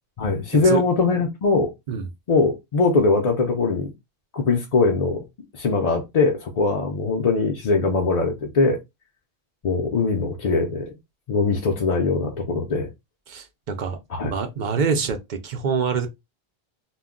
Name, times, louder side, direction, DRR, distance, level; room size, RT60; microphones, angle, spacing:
voice 1, 0.2-1.7 2.3-3.9 4.3-5.2 5.5-8.8 9.6-10.9 11.3-12.9 14.1-14.3, left 3 dB, 50° left, 0.5 m, -21 dB
voice 2, 13.3-16.1, right 5 dB, 55° right, 0.6 m, -26 dB
2.2 x 2.1 x 3.5 m
omnidirectional pair, 1.0 m